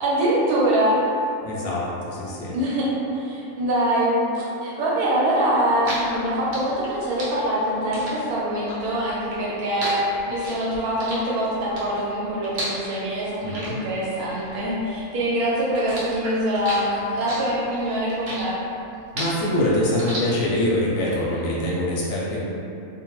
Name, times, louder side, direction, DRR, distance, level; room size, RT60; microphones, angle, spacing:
voice 1, 0.0-1.0 2.5-10.0 10.3-18.6, right 1 dB, 80° right, -6 dB, 1.2 m, -24 dB
voice 2, 1.4-2.5 13.4-13.8 19.1-22.4, left 1 dB, 70° left, -5 dB, 0.9 m, -24 dB
sound 1, 5.4-15.3 15.6-20.8, right 1 dB, 55° right, 0.5 m, -34 dB
2.5 x 2.2 x 2.9 m, 2.7 s
omnidirectional pair, 1.6 m